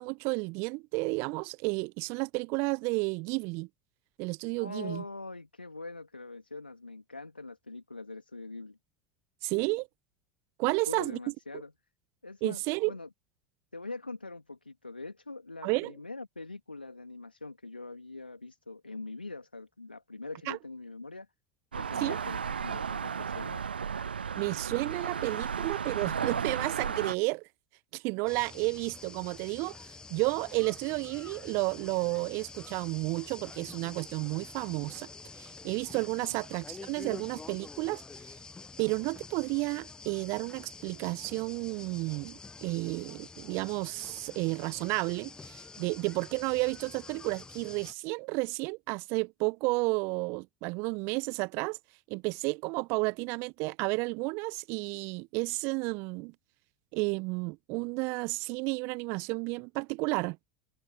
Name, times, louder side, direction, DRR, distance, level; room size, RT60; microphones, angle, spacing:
voice 1, 0.0-3.7 4.2-5.0 9.4-9.9 10.6-11.2 12.4-12.9 15.6-15.9 20.5-20.6 22.0-22.2 24.4-27.4 27.9-35.1 35.4-38.0 38.8-51.8 52.1-56.3 56.9-60.5, right 28 dB, 55° right, 1.0 m, -32 dB
voice 2, 4.6-8.8 10.7-11.7 12.2-13.1 13.7-21.3 21.7-23.6 36.2-36.4, left 3 dB, 90° left, 2.7 m, -43 dB
sound 1, 21.7-27.1, right 6 dB, 85° right, 0.3 m, -34 dB
sound 2, 28.3-47.9, left 4 dB, 15° left, 1.0 m, -48 dB
figure-of-eight pair, 75°, 5 cm